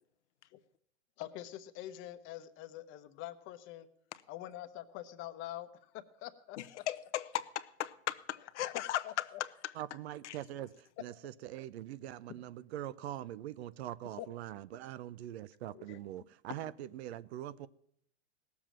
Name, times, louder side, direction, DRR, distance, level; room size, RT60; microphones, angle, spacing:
voice 1, 1.2-3.9 4.3-6.8 8.6-9.4 14.2-14.3 15.9-16.0, left 13 dB, 35° left, 1.0 m, -45 dB
voice 2, 6.6-9.0 9.4-9.7 10.2-10.3, left 12 dB, 85° left, 0.9 m, -37 dB
voice 3, 9.8-10.7 11.0-17.7, right 12 dB, 65° right, 0.7 m, -43 dB
17.0 x 7.2 x 7.4 m
supercardioid pair, 140°, 34 cm